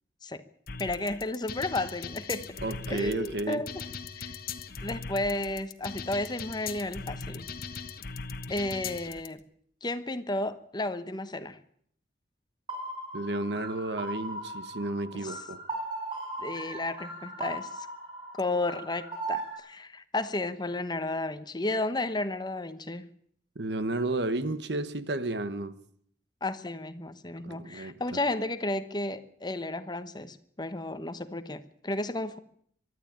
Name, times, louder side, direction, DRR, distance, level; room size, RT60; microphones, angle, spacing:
sound 1, 0.7-9.3, left 5 dB, 50° left, 1.3 m, -39 dB
voice 1, 0.8-2.5 2.9-3.7 4.2-4.4 4.8-7.5 8.5-9.4 9.8-11.6 15.1-15.4 16.4-17.9 18.4-23.1 26.4-32.4, left 2 dB, 25° left, 1.0 m, -33 dB
voice 2, 2.6-3.6 13.1-15.6 23.5-25.8 27.4-28.2, right 2 dB, 65° right, 1.2 m, -32 dB
sound 2, 12.7-19.5, right 2 dB, 25° right, 6.7 m, -38 dB
23.5 x 12.5 x 8.8 m
head